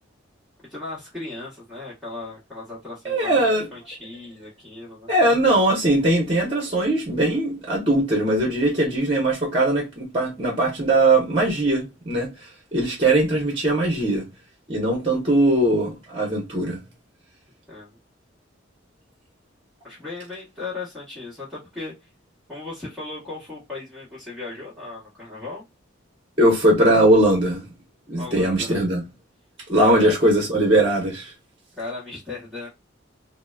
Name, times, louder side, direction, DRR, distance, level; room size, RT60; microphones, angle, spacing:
voice 1, 0.7-5.1 17.7-18.0 19.8-22.1 22.5-25.6 28.1-28.8 29.7-30.2 31.7-32.7, left 3 dB, ahead, 1.1 m, -36 dB
voice 2, 3.0-3.7 5.1-12.3 12.7-14.2 14.7-16.8 26.4-27.6 28.1-29.0 29.7-31.3, right 1 dB, 30° right, 0.9 m, -20 dB
3.8 x 2.1 x 2.3 m
head